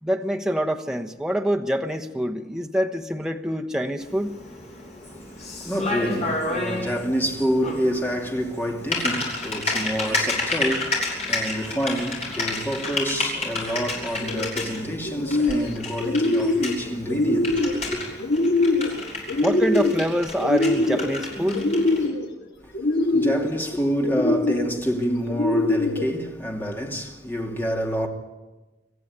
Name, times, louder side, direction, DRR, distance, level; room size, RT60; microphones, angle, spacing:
voice 1, 0.0-4.4 19.4-21.6, equal, 5° right, 1.2 m, -25 dB
Typing, 4.0-22.1, left 2 dB, 40° left, 6.8 m, -31 dB
voice 2, 5.3-18.0 22.6-22.7 23.0-28.1, equal, 10° left, 2.8 m, -28 dB
sound 1, 14.1-14.6 15.0-15.7 16.0-16.7 17.1-17.8 18.2-18.9 19.3-20.1 20.4-21.1 21.5-22.3 22.7-23.5 24.0-24.7 25.3-26.1, left 2 dB, 85° left, 3.1 m, -23 dB
26.5 x 14.5 x 9.7 m
head